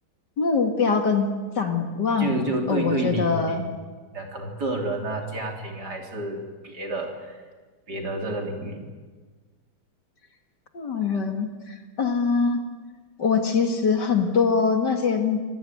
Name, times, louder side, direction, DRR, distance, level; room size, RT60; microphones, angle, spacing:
voice 1, 0.4-2.3 2.7-3.7 10.7-12.6 13.2-15.4, left 5 dB, 55° left, 5 dB, 2.7 m, -23 dB
voice 2, 2.2-3.7 4.1-7.4 7.9-8.8, right 2 dB, 50° right, 2 dB, 4.0 m, -29 dB
26.5 x 19.0 x 9.3 m, 1.4 s
omnidirectional pair, 2.2 m